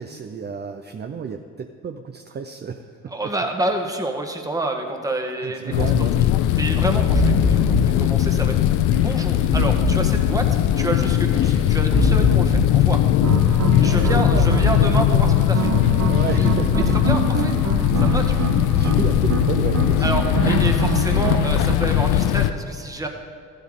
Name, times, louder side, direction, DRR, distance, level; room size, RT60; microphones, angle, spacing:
voice 1, 0.0-3.3 5.1-6.2 7.0-7.1 13.6-14.5 16.0-17.2 18.3-20.3 20.7-21.0, right 6 dB, 35° right, 6 dB, 0.6 m, -32 dB
voice 2, 3.1-5.9 6.2-6.3 6.6-13.1 13.8-15.7 16.3-16.5 17.0-17.5 18.0-18.4 20.0-23.1, right 2 dB, 10° right, 3 dB, 1.3 m, -28 dB
sound 1, 5.7-22.5, left 12 dB, 90° left, 0.5 m, -19 dB
sound 2, 7.1-16.6, equal, 45° left, 1.8 m, -26 dB
sound 3, 13.2-21.8, right 8 dB, 65° right, 0.8 m, -27 dB
14.0 x 11.5 x 3.7 m, 2.4 s
cardioid pair, 90°, 30 cm